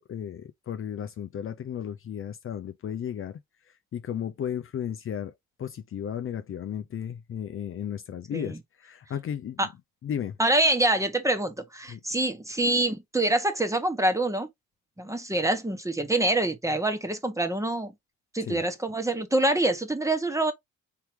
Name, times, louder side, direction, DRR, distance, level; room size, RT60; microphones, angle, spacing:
voice 1, 0.0-3.4 3.9-5.3 5.6-9.6 10.0-10.4 11.9-12.0 18.5-18.6, left 9 dB, 45° left, 0.6 m, -34 dB
voice 2, 10.4-14.5 15.0-17.9 18.3-20.5, right 1 dB, 10° right, 1.1 m, -25 dB
4.6 x 2.9 x 3.4 m
cardioid pair, 90°, 30 cm